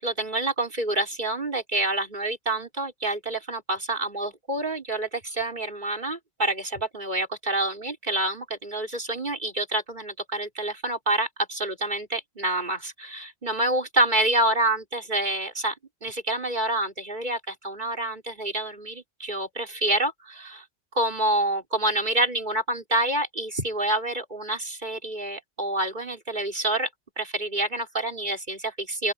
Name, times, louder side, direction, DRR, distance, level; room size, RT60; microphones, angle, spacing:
voice 1, 0.0-15.7 16.0-20.6 20.9-26.9 27.2-29.1, right 1 dB, 45° right, 4.9 m, -27 dB
open air
omnidirectional pair, 1.1 m